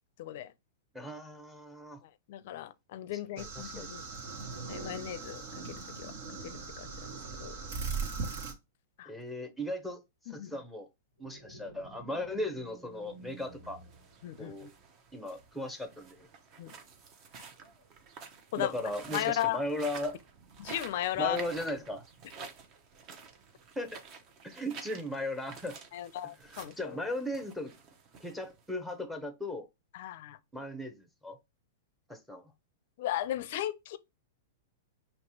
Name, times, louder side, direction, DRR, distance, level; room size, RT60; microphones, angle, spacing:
voice 1, 0.2-0.5 2.3-4.0 4.7-6.1 6.4-6.9 7.4-7.5 9.0-9.1 10.3-10.5 14.2-14.7 16.6-16.7 18.5-18.7 19.1-19.6 20.6-21.4 25.9-27.0 29.9-30.4 33.0-34.0, left 13 dB, 60° left, 0.5 m, -36 dB
voice 2, 0.9-2.0 3.4-3.9 9.1-10.0 10.3-10.9 11.2-13.8 14.4-14.7 15.1-16.3 18.6-20.2 21.2-22.0 23.8-24.0 24.4-25.8 26.5-27.7 28.2-29.7 30.5-30.9 31.2-31.4 32.1-32.4, left 1 dB, ahead, 0.8 m, -37 dB
sound 1, 3.4-8.5, right 4 dB, 65° right, 1.6 m, -39 dB
sound 2, 11.2-14.8, right 1 dB, 85° right, 2.1 m, -53 dB
sound 3, 13.2-28.9, right 5 dB, 35° right, 0.9 m, -50 dB
5.2 x 3.0 x 2.9 m
hypercardioid pair, 140°, 0 cm